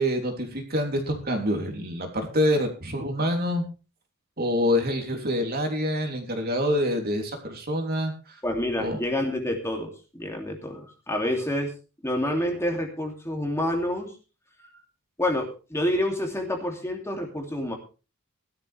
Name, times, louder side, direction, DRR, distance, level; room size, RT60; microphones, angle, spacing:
voice 1, 0.0-3.6 4.4-8.4 8.8-9.0, equal, 45° right, 3 dB, 3.3 m, -26 dB
voice 2, 8.4-11.7 12.0-14.1 15.2-17.7, left 1 dB, 10° left, 1 dB, 2.8 m, -28 dB
17.0 x 12.5 x 3.5 m, 0.34 s
head